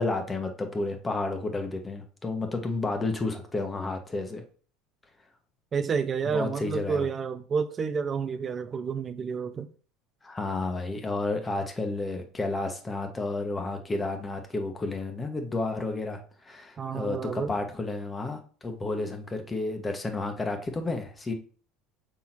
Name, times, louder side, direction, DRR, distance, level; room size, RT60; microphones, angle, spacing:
voice 1, 0.0-4.4 6.3-7.1 10.2-21.3, left 2 dB, 20° left, 1.4 m, -31 dB
voice 2, 5.7-9.7 16.8-17.5, right 6 dB, 35° right, 0.5 m, -30 dB
6.1 x 3.7 x 4.4 m
hypercardioid pair, 80°, 0 cm